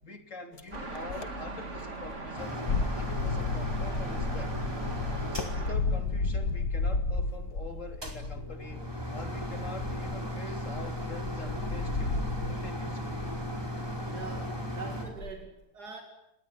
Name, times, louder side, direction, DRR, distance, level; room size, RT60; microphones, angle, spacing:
voice 1, 0.0-2.6 2.9-4.5 5.3-12.2 12.4-13.2, left 2 dB, 50° left, 6 dB, 3.4 m, -45 dB
sound 1, 0.6-1.5 1.8-12.7 13.1-13.5 13.8-14.4 15.1-15.5, left 3 dB, 70° left, 2.0 m, -33 dB
sound 2, 0.7-5.8, right 2 dB, 45° right, 3.0 m, -41 dB
sound 3, 2.4-6.6 7.9-15.1, equal, 15° right, 4.6 m, -37 dB
voice 2, 14.1-16.0, right 5 dB, 75° right, 4 dB, 3.0 m, -43 dB
29.0 x 19.5 x 9.8 m, 0.81 s
omnidirectional pair, 1.7 m